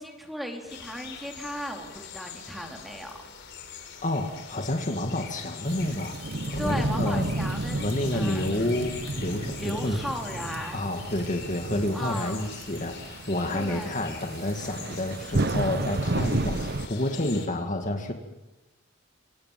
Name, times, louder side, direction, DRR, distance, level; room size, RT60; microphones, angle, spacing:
voice 1, 0.0-3.2 6.6-7.8 8.1-8.7 9.6-10.8 11.9-12.4 13.5-14.1, equal, ahead, 2 dB, 4.4 m, -36 dB
sound 1, 0.7-17.5, left 7 dB, 60° left, 5.0 m, -44 dB
voice 2, 4.0-6.2 6.5-7.3 7.8-10.1 10.7-18.1, left 1 dB, 40° left, 4 dB, 2.2 m, -29 dB
Thunderstorm / Rain, 5.7-16.9, right 2 dB, 55° right, 1.0 m, -32 dB
27.0 x 27.0 x 7.6 m, 1.0 s
head